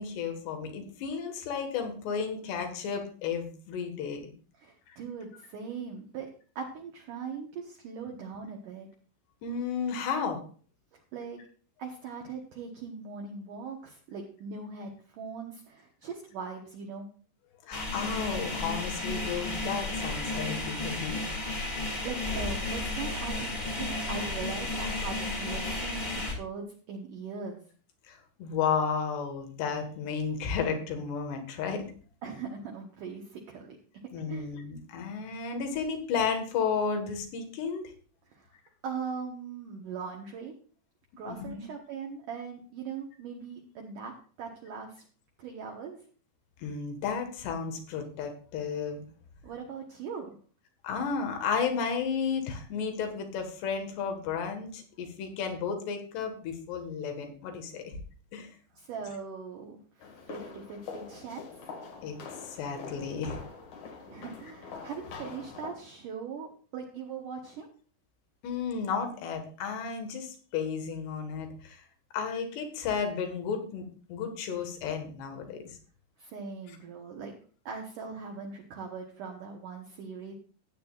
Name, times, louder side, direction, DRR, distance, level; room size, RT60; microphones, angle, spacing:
voice 1, 0.0-4.2 4.9-5.0 9.4-10.4 17.6-21.2 23.8-24.0 28.1-31.9 34.1-37.8 41.3-41.7 46.6-49.1 50.8-58.0 58.3-58.5 62.0-62.2 62.4-63.4 68.4-71.9 72.1-75.8, left 6 dB, 75° left, 5 dB, 3.7 m, -33 dB
voice 2, 4.6-6.3 6.6-8.9 10.9-11.4 11.8-17.1 21.8-27.6 32.2-33.8 34.3-34.5 38.3-38.5 38.8-40.5 41.2-44.1 44.4-45.1 45.4-46.0 49.4-50.4 58.7-61.5 64.1-67.7 76.2-77.4 77.7-80.3, right 5 dB, 65° right, 1 dB, 2.3 m, -40 dB
sound 1, 17.7-26.3, left 2 dB, 15° left, 2.2 m, -33 dB
sound 2, 60.0-65.8, left 5 dB, 55° left, 2.6 m, -44 dB
15.5 x 9.4 x 2.5 m, 0.41 s
omnidirectional pair, 5.0 m